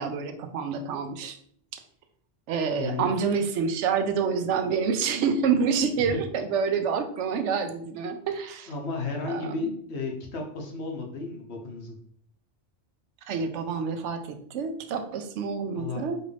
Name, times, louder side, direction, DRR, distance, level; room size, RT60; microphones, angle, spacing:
voice 1, 0.0-1.4 2.5-8.7 9.3-9.6 13.3-16.2, right 6 dB, 85° right, 7 dB, 0.9 m, -27 dB
voice 2, 2.8-3.1 6.0-6.2 8.7-12.0 15.7-16.1, left 4 dB, 70° left, 2 dB, 1.1 m, -33 dB
4.5 x 2.5 x 3.3 m, 0.62 s
omnidirectional pair, 1.2 m